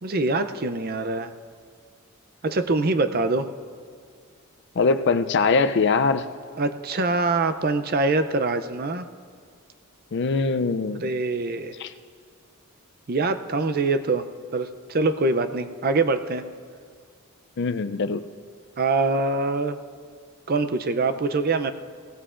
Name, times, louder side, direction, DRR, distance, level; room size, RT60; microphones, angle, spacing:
voice 1, 0.0-1.3 2.4-3.5 6.6-9.1 11.0-11.7 13.1-14.2 14.5-16.5 18.8-19.8 20.5-21.7, right 3 dB, 45° right, 9 dB, 0.5 m, -24 dB
voice 2, 4.8-6.3 10.1-11.1 11.8-11.9 17.6-18.2, left 4 dB, 50° left, 11 dB, 0.5 m, -22 dB
22.0 x 17.0 x 2.5 m, 2.1 s
head